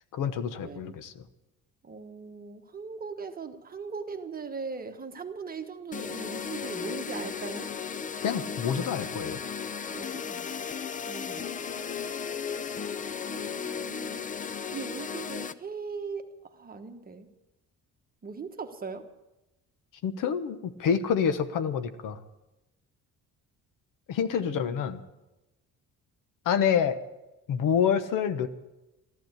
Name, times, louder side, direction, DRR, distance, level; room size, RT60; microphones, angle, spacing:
voice 1, 0.1-1.1 8.2-9.4 20.0-22.2 24.1-25.0 26.4-27.0 27.5-28.5, left 7 dB, 70° left, 11 dB, 1.2 m, -27 dB
voice 2, 0.6-0.9 1.8-7.7 9.9-10.5 11.0-11.5 11.8-11.9 13.3-14.3 14.7-17.3 18.2-19.0 24.4-24.9, right 5 dB, 25° right, 6 dB, 1.3 m, -40 dB
sound 1, 5.9-15.5, left 6 dB, 25° left, 0.5 m, -35 dB
14.5 x 12.0 x 8.0 m, 0.99 s
cardioid pair, 135°, 33 cm